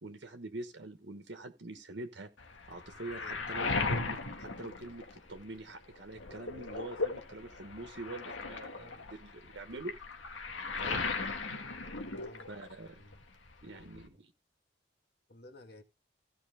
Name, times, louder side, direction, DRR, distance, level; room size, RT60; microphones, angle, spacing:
voice 1, 0.0-2.3 2.7-9.9 10.8-11.0 12.5-13.0 13.6-14.3, right 2 dB, 65° right, 1.3 m, -45 dB
Waves surf, 2.4-5.6 5.9-12.9 13.1-14.1, left 3 dB, 85° left, 1.9 m, -37 dB
voice 2, 3.1-3.4 8.8-9.0 12.0-12.5 12.8-13.2 13.6-14.1 15.3-15.8, left 2 dB, 55° left, 1.7 m, -54 dB
16.0 x 5.9 x 3.4 m
head